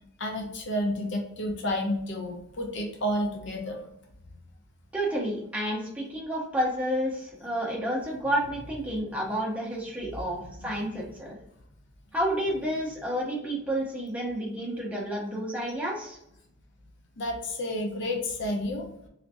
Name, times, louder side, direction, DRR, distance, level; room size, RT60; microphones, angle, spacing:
voice 1, 0.2-3.8 7.4-7.7 8.6-8.7 10.3-11.0 12.7-12.8 17.2-18.9, left 1 dB, 55° left, 2 dB, 0.6 m, -31 dB
voice 2, 4.9-11.3 12.1-16.2, equal, 5° right, -4 dB, 0.7 m, -30 dB
3.3 x 2.8 x 2.6 m, 0.78 s
head